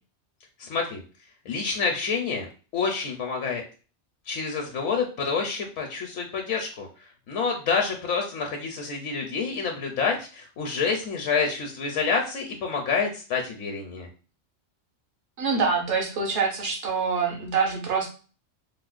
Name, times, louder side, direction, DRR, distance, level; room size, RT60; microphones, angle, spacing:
voice 1, 0.6-1.0 1.5-3.6 4.3-6.9 7.3-14.1, left 5 dB, 75° left, 2 dB, 0.9 m, -28 dB
voice 2, 15.4-18.1, right 5 dB, 70° right, 0 dB, 1.2 m, -25 dB
4.8 x 2.0 x 2.4 m, 0.36 s
omnidirectional pair, 1.3 m